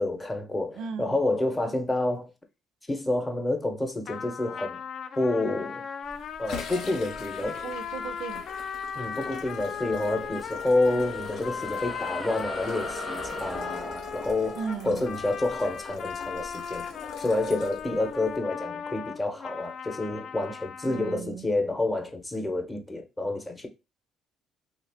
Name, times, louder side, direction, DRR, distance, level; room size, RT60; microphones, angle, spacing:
voice 1, 0.0-2.3 2.9-4.8 5.2-5.9 6.4-7.6 8.9-14.6 14.8-16.9 17.2-23.7, left 2 dB, 20° left, 0.7 m, -29 dB
voice 2, 0.7-1.2 7.4-8.4 14.5-15.0 20.9-21.5, right 6 dB, 70° right, 0.3 m, -36 dB
sound 1, 4.0-21.2, left 7 dB, 50° left, 0.3 m, -37 dB
sound 2, 6.0-18.4, left 5 dB, 75° left, 0.7 m, -44 dB
sound 3, 10.6-17.4, right 2 dB, 15° right, 0.5 m, -42 dB
2.9 x 2.3 x 3.4 m
cardioid pair, 100°, 0 cm